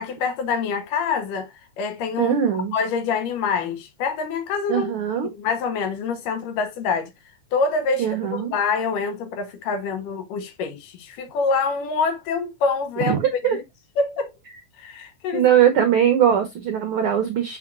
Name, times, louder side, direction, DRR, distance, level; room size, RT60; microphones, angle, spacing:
voice 1, 0.0-1.5 1.8-2.3 2.7-4.9 5.3-7.1 7.5-13.2 13.4-13.6 14.0-14.3 14.8-15.5, left 5 dB, 90° left, 2.9 m, -25 dB
voice 2, 2.2-2.7 4.7-5.3 8.0-8.5 13.0-13.6 15.3-17.6, right 9 dB, 80° right, 1.2 m, -20 dB
6.7 x 5.6 x 2.5 m
omnidirectional pair, 3.6 m